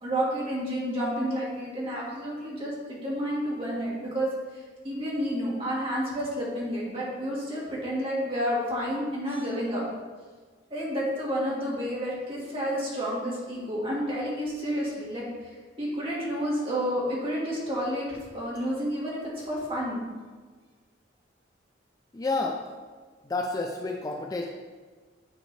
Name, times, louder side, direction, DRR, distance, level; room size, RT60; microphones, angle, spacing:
voice 1, 0.0-9.8 10.7-20.0, equal, 30° right, -5 dB, 1.7 m, -30 dB
voice 2, 22.1-22.6 23.3-24.5, left 3 dB, 20° left, 2 dB, 0.4 m, -29 dB
9.1 x 4.4 x 3.2 m, 1.4 s
head